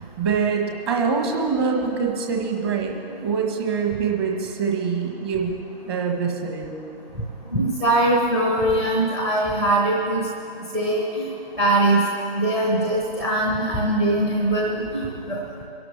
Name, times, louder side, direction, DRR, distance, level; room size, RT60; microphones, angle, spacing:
voice 1, 0.0-2.9 3.2-5.5 5.8-6.7, right 5 dB, 25° right, 1 dB, 1.6 m, -24 dB
voice 2, 7.5-10.2 10.7-11.2 11.6-12.0 12.4-15.0 15.3-15.4, right 1 dB, 10° right, -1 dB, 0.7 m, -21 dB
24.5 x 12.0 x 3.4 m, 2.7 s
figure-of-eight pair, 155°, 32 cm